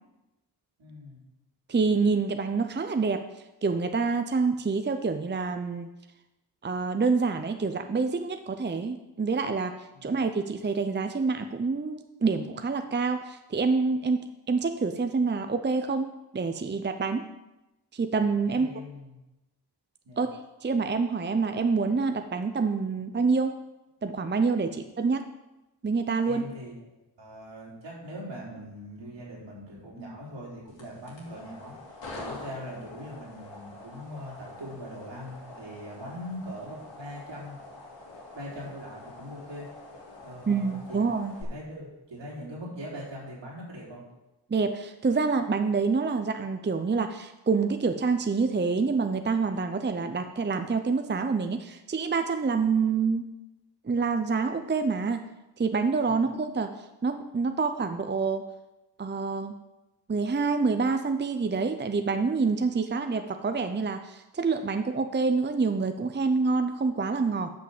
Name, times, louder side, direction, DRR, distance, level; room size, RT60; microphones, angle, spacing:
voice 1, 0.8-1.2 9.9-10.2 18.4-19.2 20.0-20.3 26.2-26.8 27.2-37.6 38.3-39.7 40.2-41.0 41.4-44.0 56.1-56.2, equal, 80° right, -4 dB, 3.8 m, -41 dB
voice 2, 1.7-3.2 3.6-5.9 6.6-9.7 10.0-16.1 16.3-17.3 17.9-18.7 20.2-23.5 24.0-25.3 25.8-26.5 40.5-41.4 44.5-53.3 53.8-55.3 55.6-58.4 59.0-59.6 60.1-67.5, right 4 dB, 25° right, 8 dB, 0.6 m, -27 dB
sound 1, 30.7-41.4, left 2 dB, 90° left, 2.7 m, -45 dB
9.3 x 5.4 x 7.2 m, 0.98 s
cardioid pair, 65°, 43 cm